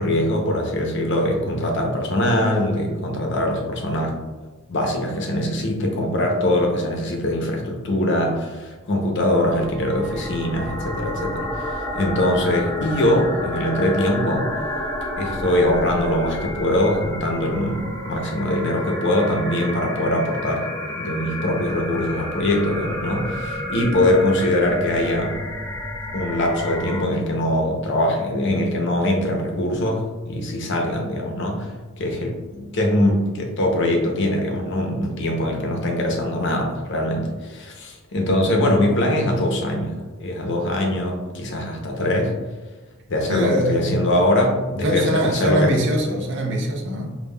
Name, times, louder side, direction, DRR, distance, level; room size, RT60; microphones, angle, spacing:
voice 1, 0.0-4.2 4.7-14.5 15.2-20.7 20.9-25.4 26.1-31.7 32.0-42.3 43.1-45.7, left 1 dB, 55° left, 1 dB, 0.6 m, -22 dB
sound 1, 9.2-27.0, left 1 dB, 15° left, 0.3 m, -30 dB
voice 2, 43.3-44.0 44.8-47.2, equal, 55° right, 1 dB, 0.6 m, -22 dB
5.2 x 2.3 x 2.2 m, 1.3 s
head